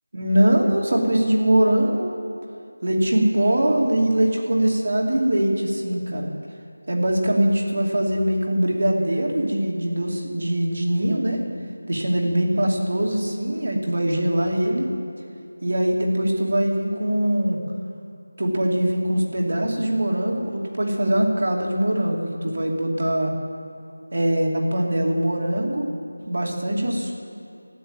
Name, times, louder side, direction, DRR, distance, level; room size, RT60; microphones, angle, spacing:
voice 1, 0.1-2.2 2.8-6.3 6.9-11.4 11.9-14.9 15.6-17.6 18.4-23.3 24.1-25.9 26.3-27.1, right 1 dB, 50° right, 0 dB, 2.7 m, -22 dB
13.5 x 9.3 x 9.0 m, 2.7 s
figure-of-eight pair, 180°, 0 cm